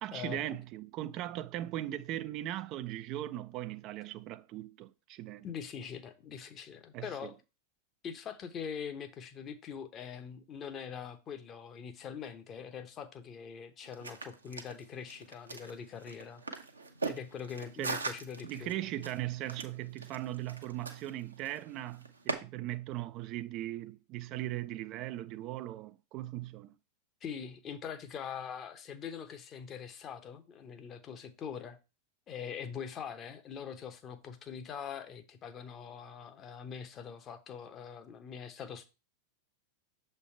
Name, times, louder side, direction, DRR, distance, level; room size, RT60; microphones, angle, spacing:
voice 1, 0.0-5.5 6.9-7.3 17.8-18.0 18.4-26.7, right 14 dB, 40° right, 0.3 m, -39 dB
voice 2, 5.4-7.3 8.0-16.4 17.1-18.7 27.2-31.8 32.3-38.9, left 7 dB, 30° left, 0.8 m, -43 dB
sound 1, 13.8-22.4, right 4 dB, 80° right, 0.8 m, -41 dB
6.9 x 3.3 x 4.3 m
figure-of-eight pair, 90°, 0 cm